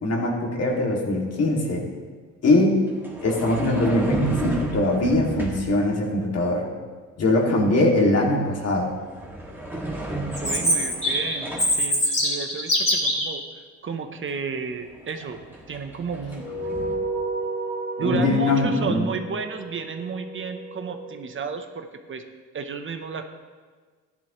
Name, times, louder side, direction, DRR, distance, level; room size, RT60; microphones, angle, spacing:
voice 1, 0.0-1.8 2.4-2.9 3.2-6.7 7.2-8.9 18.0-19.1, left 2 dB, 55° left, -1 dB, 2.5 m, -22 dB
sound 1, 0.6-0.8 2.9-5.8 8.4-8.7 9.0-11.8 14.3-14.4 14.7-17.0, right 2 dB, 5° right, 2.0 m, -33 dB
Chirp tweet, 10.3-13.3, equal, 25° left, 2.9 m, -23 dB
voice 2, 10.4-13.4 13.8-15.4 15.7-16.5 18.0-22.2 22.5-23.3, right 5 dB, 40° right, 6 dB, 0.9 m, -32 dB
sound 2, 16.4-21.2, right 2 dB, 25° right, 2.2 m, -32 dB
14.0 x 11.0 x 3.1 m, 1.5 s
cardioid pair, 90°, 30 cm